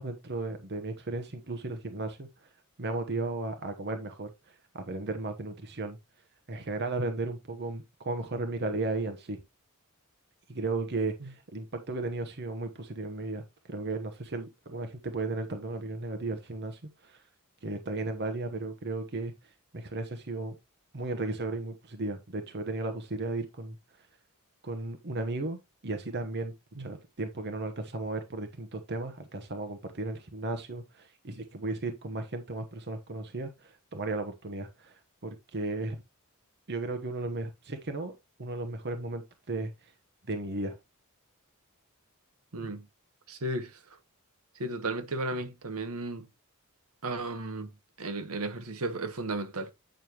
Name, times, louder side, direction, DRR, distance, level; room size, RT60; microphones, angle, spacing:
voice 1, 0.0-2.5 2.8-6.0 6.5-9.4 10.5-13.4 13.7-17.2 17.6-19.3 19.7-20.5 20.9-23.8 24.6-25.6 25.8-26.5 26.8-36.0 36.7-38.1 38.4-39.9 40.3-40.8, right 2 dB, 50° right, 1.0 m, -35 dB
voice 2, 42.5-42.8 43.3-43.7 44.6-46.3 47.0-47.7 48.0-49.7, right 2 dB, 75° right, 1.3 m, -34 dB
9.0 x 6.4 x 3.0 m
head